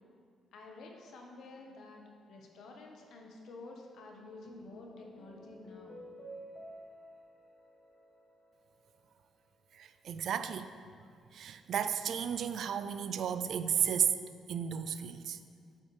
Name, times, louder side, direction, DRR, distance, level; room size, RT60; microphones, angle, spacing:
voice 1, 0.5-2.0 2.3-6.0, left 2 dB, 70° left, 1 dB, 1.0 m, -50 dB
sound 1, 4.4-9.0, right 1 dB, 25° left, 1.2 m, -52 dB
voice 2, 9.7-10.7 11.3-14.2 14.5-15.4, right 8 dB, 65° right, 11 dB, 0.3 m, -33 dB
8.1 x 5.5 x 3.2 m, 2.2 s
cardioid pair, 90°, 0 cm